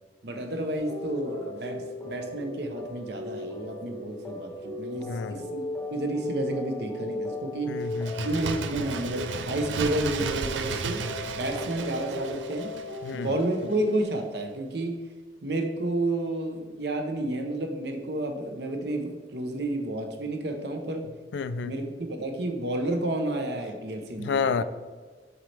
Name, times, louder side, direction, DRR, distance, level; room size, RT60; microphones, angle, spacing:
voice 1, 0.2-5.6 5.9-7.8 8.2-12.8 13.1-15.0 15.4-21.1 21.7-24.6, right 1 dB, 65° right, 5 dB, 0.8 m, -31 dB
sound 1, 0.8-14.0, left 2 dB, 10° left, 0.8 m, -37 dB
voice 2, 5.1-5.4 7.7-8.3 13.0-13.3 21.3-21.7 24.2-24.6, left 5 dB, 75° left, 13 dB, 0.3 m, -29 dB
Bird, 7.9-13.4 13.7-13.8, right 5 dB, 85° right, 0.4 m, -34 dB
6.8 x 4.4 x 3.3 m, 1.4 s
head